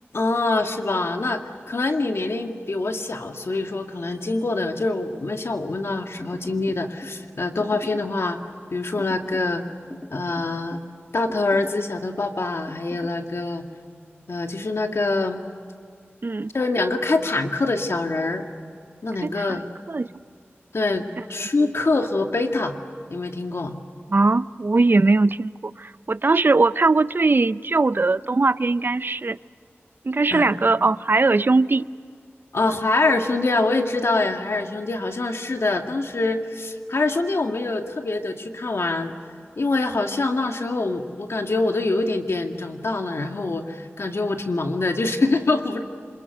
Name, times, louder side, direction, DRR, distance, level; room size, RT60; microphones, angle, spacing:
voice 1, 0.1-1.4 1.7-8.4 8.7-9.6 10.1-10.8 11.1-13.6 14.3-15.4 16.5-18.4 19.0-19.7 20.7-22.8 23.1-23.8 30.3-30.5 32.5-39.1 39.6-45.8, left 2 dB, 70° left, 4 dB, 2.1 m, -24 dB
sound 1, 6.2-7.2 7.6-8.2 9.0-9.5 9.9-10.9 11.3-11.9 12.7-13.2, left 1 dB, 20° left, 2.5 m, -40 dB
voice 2, 19.2-19.6 19.9-20.1 21.6-21.7 24.1-29.4 30.0-31.9, right 3 dB, 50° right, 16 dB, 0.5 m, -20 dB
27.5 x 26.5 x 6.8 m, 2.2 s
wide cardioid pair, 55°, 5 cm